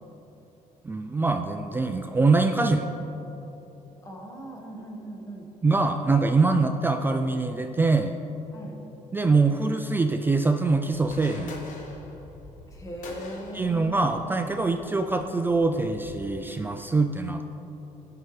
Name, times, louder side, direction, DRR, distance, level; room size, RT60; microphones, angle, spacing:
voice 1, 0.9-2.9 5.6-8.1 9.1-11.6 13.5-17.6, right 3 dB, 15° right, 6 dB, 0.3 m, -24 dB
voice 2, 4.0-5.5 8.5-8.8 12.7-14.2 15.2-15.3, equal, 25° left, 0 dB, 1.5 m, -39 dB
sound 1, 10.9-16.3, left 2 dB, 70° left, 1.2 m, -45 dB
15.5 x 5.6 x 3.2 m, 3.0 s
cardioid pair, 125°, 14 cm